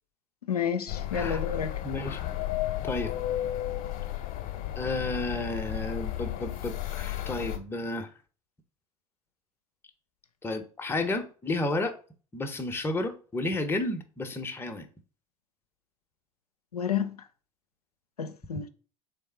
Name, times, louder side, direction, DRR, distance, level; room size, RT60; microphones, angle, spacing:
voice 1, 0.5-1.7 16.7-17.2 18.2-18.7, left 7 dB, 85° left, 0.4 m, -30 dB
sound 1, 0.9-7.6, left 13 dB, 45° left, 0.8 m, -33 dB
voice 2, 1.1-1.4 1.8-2.2 2.8-3.1 4.8-8.1 10.4-12.0 12.3-14.9, left 2 dB, 10° left, 0.7 m, -32 dB
3.5 x 3.3 x 4.3 m
figure-of-eight pair, 80°, 19 cm